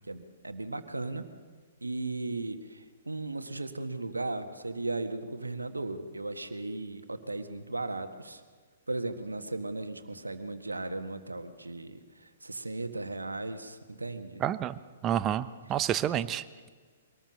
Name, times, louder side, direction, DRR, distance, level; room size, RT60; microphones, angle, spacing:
voice 1, 0.0-1.3 1.8-8.4 8.9-14.4 15.7-15.8, right 2 dB, 85° right, 8 dB, 1.7 m, -36 dB
voice 2, 14.4-16.7, right 10 dB, 25° right, 14 dB, 0.9 m, -30 dB
24.0 x 19.5 x 6.5 m, 1.5 s
figure-of-eight pair, 120°, 0 cm